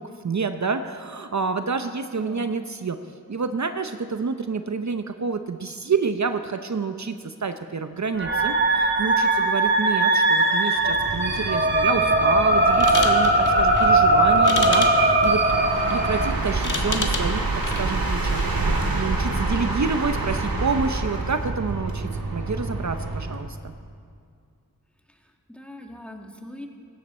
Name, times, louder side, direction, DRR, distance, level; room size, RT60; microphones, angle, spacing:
voice 1, 0.0-3.0 3.3-15.4 15.9-23.7, right 4 dB, 50° right, 8 dB, 0.7 m, -28 dB
sound 1, 8.2-16.3, right 2 dB, 30° right, 1.8 m, -20 dB
sound 2, 10.8-23.5, right 2 dB, 75° right, 1.9 m, -28 dB
voice 2, 11.8-12.5 25.5-26.7, left 1 dB, 5° left, 2 dB, 1.8 m, -41 dB
sound 3, 12.7-18.6, left 3 dB, 60° left, 1.6 m, -32 dB
19.0 x 16.5 x 4.3 m, 2.3 s
wide cardioid pair, 60°, 35 cm